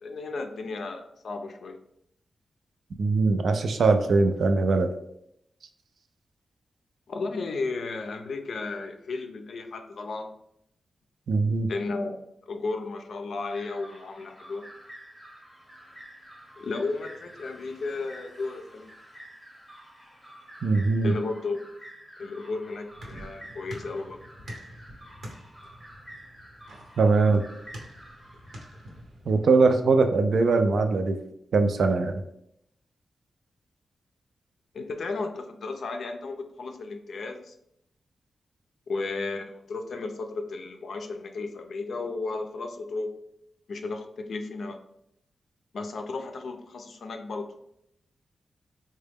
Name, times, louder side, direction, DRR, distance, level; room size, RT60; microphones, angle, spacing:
voice 1, 0.0-1.8 7.1-10.3 11.7-12.2 12.5-14.6 16.6-18.9 21.0-21.6 22.2-24.2 34.7-37.5 38.9-43.2 43.7-44.8 45.7-47.5, left 3 dB, 70° left, 5 dB, 0.4 m, -34 dB
voice 2, 3.0-4.9 11.3-11.7 20.6-21.1 27.0-27.4 29.3-31.2 31.5-32.1, right 3 dB, 65° right, 7 dB, 0.4 m, -21 dB
sound 1, 13.5-29.0, right 1 dB, 5° left, 0.8 m, -49 dB
sound 2, 22.4-29.6, equal, 90° right, 1.0 m, -46 dB
3.7 x 2.2 x 3.4 m, 0.77 s
wide cardioid pair, 130°, 0 cm